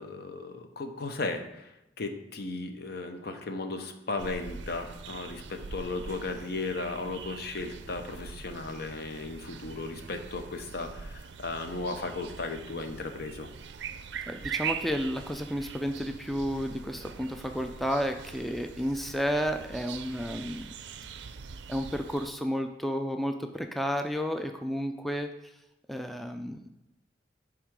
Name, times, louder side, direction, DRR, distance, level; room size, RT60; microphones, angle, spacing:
voice 1, 0.0-13.5, left 3 dB, 60° left, 6 dB, 0.7 m, -36 dB
sound 1, 4.2-22.3, right 6 dB, 70° right, 0.4 m, -42 dB
voice 2, 14.3-20.7 21.7-25.5 25.9-26.6, equal, ahead, 5 dB, 0.3 m, -32 dB
10.0 x 3.6 x 4.7 m, 0.90 s
head